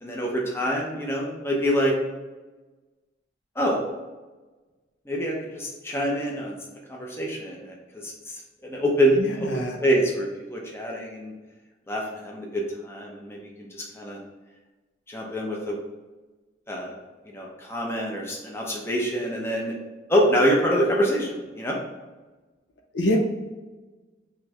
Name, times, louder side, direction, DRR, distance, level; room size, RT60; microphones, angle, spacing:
voice 1, 0.0-1.9 3.6-3.8 5.1-6.6 6.9-7.7 8.0-8.1 8.6-9.2 9.5-11.3 11.9-14.2 15.1-15.8 16.7-16.9 17.3-19.7 20.1-21.8, equal, 15° left, -2 dB, 0.6 m, -25 dB
voice 2, 9.2-9.8 22.9-23.2, left 1 dB, 75° left, 2 dB, 0.6 m, -25 dB
3.1 x 3.0 x 3.5 m, 1.2 s
head